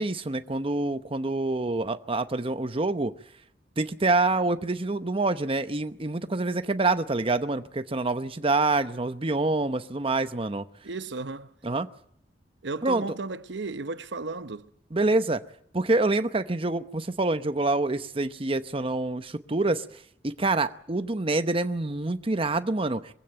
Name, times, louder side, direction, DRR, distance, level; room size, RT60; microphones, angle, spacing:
voice 1, 0.0-3.1 3.8-10.6 11.6-11.9 12.8-13.1 14.9-15.4 15.7-19.8 20.2-23.1, right 2 dB, 30° right, 0.9 m, -26 dB
voice 2, 10.8-11.5 12.6-14.7, right 3 dB, 85° right, 1.0 m, -34 dB
23.0 x 16.0 x 8.9 m
head